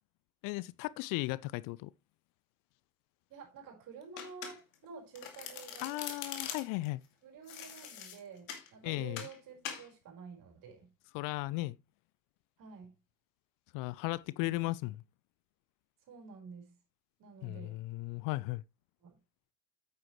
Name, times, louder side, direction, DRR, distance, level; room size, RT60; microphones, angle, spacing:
voice 1, 0.4-1.9 5.8-7.0 8.8-9.2 11.1-11.8 13.7-15.0 17.4-18.6, left 20 dB, 55° left, 0.6 m, -36 dB
voice 2, 3.3-6.0 7.2-10.9 12.6-12.9 14.4-14.7 16.1-16.7 17.2-17.8 19.0-19.2, right 5 dB, 50° right, 4.7 m, -50 dB
Domestic sounds home sounds, 4.2-4.8 5.1-6.9 7.5-8.7 9.2-9.4 9.6-9.9, left 8 dB, 70° left, 2.4 m, -43 dB
9.7 x 8.8 x 3.1 m
hypercardioid pair, 65°, 40 cm